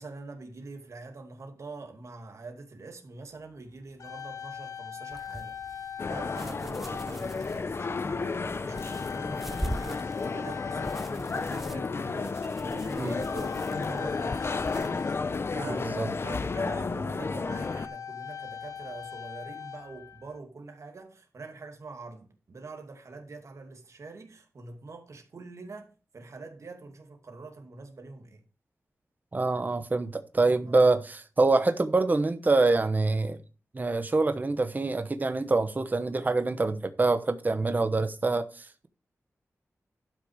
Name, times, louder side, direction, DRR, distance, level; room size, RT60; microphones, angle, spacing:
voice 1, 0.0-28.4 30.7-30.8, right 3 dB, 65° right, 2.4 m, -44 dB
sound 1, 3.5-3.6 3.8-7.3 8.0-8.2 8.7-12.0 13.1-16.2 16.9-17.0 17.3-20.4, left 8 dB, 80° left, 1.3 m, -42 dB
sound 2, 5.1-14.9, equal, 5° right, 0.8 m, -43 dB
sound 3, 6.0-17.9, left 4 dB, 50° left, 0.7 m, -32 dB
voice 2, 29.3-33.4 33.7-38.9, right 3 dB, 30° right, 1.0 m, -25 dB
12.0 x 6.0 x 4.9 m
wide cardioid pair, 110°, 5 cm